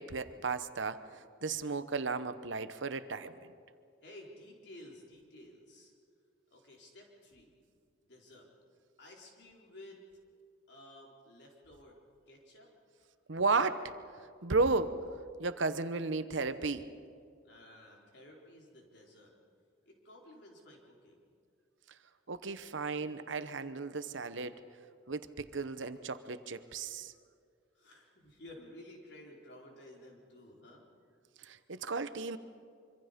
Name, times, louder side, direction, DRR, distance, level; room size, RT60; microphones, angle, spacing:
voice 1, 0.0-3.3 13.3-13.9 14.4-15.0 15.4-16.9 22.3-24.6 25.1-27.1 31.4-32.4, right 4 dB, 75° right, 12 dB, 0.9 m, -34 dB
voice 2, 4.0-5.9 6.5-7.5 8.0-8.5 9.0-10.0 10.7-12.0 12.3-12.7 13.0-13.1 17.4-19.3 19.9-21.3 27.7-31.1, left 1 dB, 60° left, -1 dB, 4.1 m, -54 dB
25.5 x 25.0 x 5.2 m, 2.3 s
head